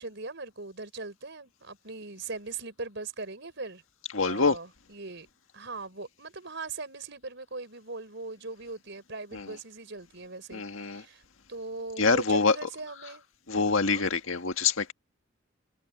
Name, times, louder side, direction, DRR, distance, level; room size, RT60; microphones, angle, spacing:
voice 1, 0.0-3.8 4.2-5.3 5.5-11.2 11.5-13.2 13.9-14.0, right 3 dB, 60° right, 5.6 m, -40 dB
voice 2, 4.1-4.6 9.3-9.5 10.5-11.0 12.0-12.6 13.5-14.9, left 4 dB, 80° left, 1.8 m, -25 dB
head